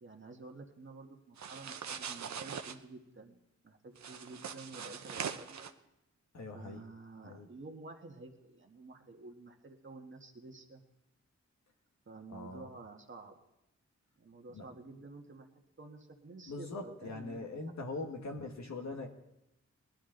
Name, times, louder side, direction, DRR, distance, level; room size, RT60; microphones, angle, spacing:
voice 1, 0.0-3.4 3.6-5.7 6.5-10.8 12.1-13.5 14.2-15.5 15.8-18.2 18.7-18.8, right 3 dB, 40° right, 3 dB, 1.6 m, -51 dB
sound 1, 1.4-2.7 3.9-5.7, right 7 dB, 70° right, 0.8 m, -42 dB
voice 2, 6.3-6.8 7.2-7.5 12.3-12.7 14.5-14.7 16.5-19.1, left 2 dB, 70° left, 3 dB, 1.8 m, -42 dB
19.5 x 11.5 x 3.9 m, 0.89 s
wide cardioid pair, 90°, 29 cm